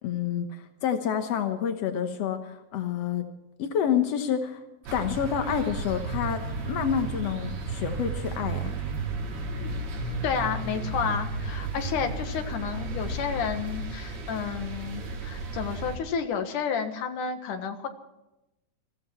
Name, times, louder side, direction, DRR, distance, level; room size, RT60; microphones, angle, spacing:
voice 1, 0.0-3.2 3.6-4.6 4.9-8.7, left 8 dB, 85° left, 7 dB, 1.4 m, -28 dB
sound 1, 4.8-16.0, right 3 dB, 75° right, 4.8 m, -33 dB
voice 2, 10.2-17.9, left 6 dB, 60° left, 6 dB, 2.7 m, -31 dB
22.0 x 15.0 x 4.5 m, 0.93 s
omnidirectional pair, 4.6 m